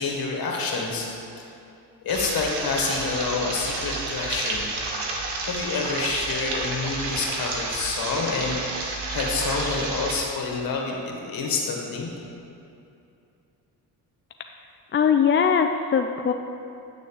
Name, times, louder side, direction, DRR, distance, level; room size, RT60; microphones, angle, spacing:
voice 1, 0.0-1.4 2.0-4.6 5.4-12.1, left 4 dB, 60° left, -1 dB, 1.8 m, -28 dB
sound 1, 2.1-10.2, right 3 dB, 75° right, 1.4 m, -30 dB
voice 2, 14.9-16.3, left 7 dB, 30° left, 5 dB, 0.4 m, -20 dB
9.1 x 4.1 x 7.2 m, 2.7 s
supercardioid pair, 70°, 40 cm